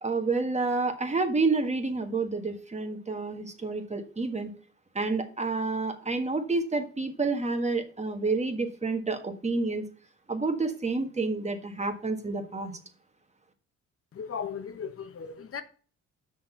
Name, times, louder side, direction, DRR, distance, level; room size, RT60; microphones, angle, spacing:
voice 1, 0.0-4.5 4.9-9.8 10.3-12.7, right 3 dB, 20° right, 1.5 m, -29 dB
voice 2, 14.1-15.6, left 6 dB, 50° left, 1.0 m, -36 dB
6.3 x 6.2 x 5.6 m
cardioid pair, 90°, 30 cm